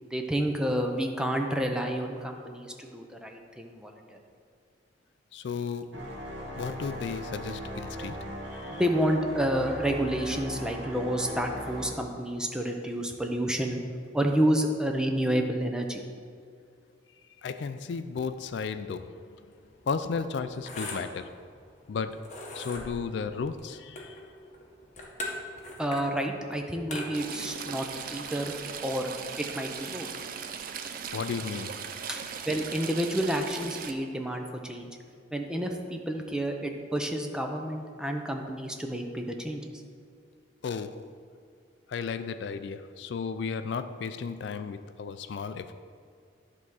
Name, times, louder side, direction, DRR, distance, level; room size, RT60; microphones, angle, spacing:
voice 1, 0.1-4.2 8.7-13.8 14.1-16.0 25.8-28.5 28.8-29.1 29.4-30.1 32.1-35.0 35.3-39.6, right 1 dB, 5° right, 0.6 m, -29 dB
voice 2, 5.3-6.2 6.5-8.8 17.4-19.5 19.9-21.4 21.9-24.2 31.1-31.9 40.6-41.2 41.9-45.7, left 5 dB, 65° left, 0.3 m, -34 dB
sound 1, 5.9-11.9, equal, 80° right, 1.3 m, -38 dB
sound 2, 19.5-29.3, left 1 dB, 40° left, 1.1 m, -42 dB
Stream / Trickle dribble, 27.1-33.9, right 7 dB, 50° right, 0.5 m, -38 dB
10.5 x 3.6 x 6.2 m
head